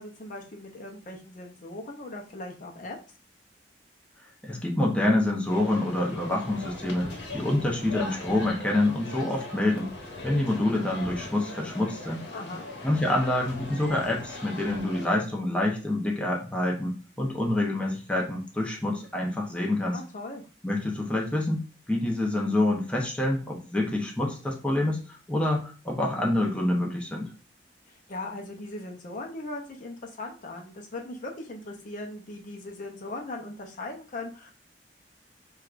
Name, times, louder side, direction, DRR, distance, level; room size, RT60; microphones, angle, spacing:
voice 1, 0.0-3.0 12.3-12.7 19.9-20.4 27.9-34.5, left 2 dB, 45° left, 1 dB, 0.6 m, -39 dB
voice 2, 4.4-9.9 10.2-12.2 12.8-20.0 20.6-21.6 21.9-25.0 25.3-27.3, left 1 dB, 5° left, -1 dB, 0.7 m, -27 dB
sound 1, 5.5-15.1, left 2 dB, 80° left, 0.9 m, -39 dB
4.6 x 2.3 x 2.4 m, 0.35 s
head